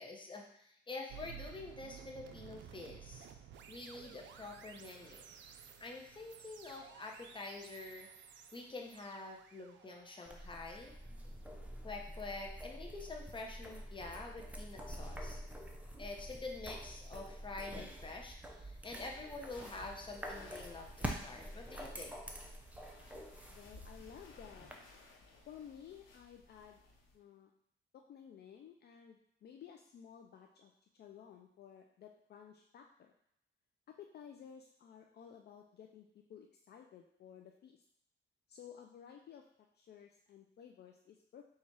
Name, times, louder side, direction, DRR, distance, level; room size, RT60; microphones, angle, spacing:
voice 1, 0.0-3.3 3.7-5.3 5.6-8.1 8.5-10.9 11.8-15.4 16.0-22.2, left 3 dB, 25° left, 1 dB, 0.9 m, -47 dB
sound 1, 1.1-12.1, right 8 dB, 70° right, 0.5 m, -55 dB
sound 2, 10.3-24.8, right 1 dB, 5° right, 0.6 m, -47 dB
sound 3, 19.5-27.2, left 3 dB, 90° left, 0.9 m, -60 dB
voice 2, 23.5-24.7 25.5-26.8 27.1-27.5 27.9-33.1 33.9-37.8 38.5-39.4 39.8-41.4, left 8 dB, 55° left, 3 dB, 0.4 m, -55 dB
4.2 x 2.4 x 4.6 m, 0.74 s
cardioid pair, 90°, 20 cm